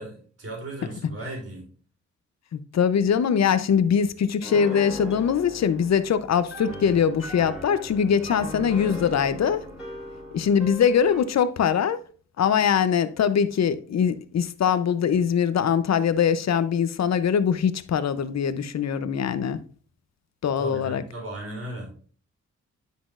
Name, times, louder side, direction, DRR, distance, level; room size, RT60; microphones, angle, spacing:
voice 1, 0.0-1.6 20.6-21.9, right 1 dB, 50° right, 3.8 m, -36 dB
voice 2, 2.5-9.6 10.3-12.0 12.4-19.6 20.4-21.0, left 7 dB, 65° left, 0.7 m, -22 dB
Piano, 4.4-11.3, left 1 dB, 5° right, 3.6 m, -39 dB
10.0 x 6.1 x 2.5 m
cardioid pair, 90°, 30 cm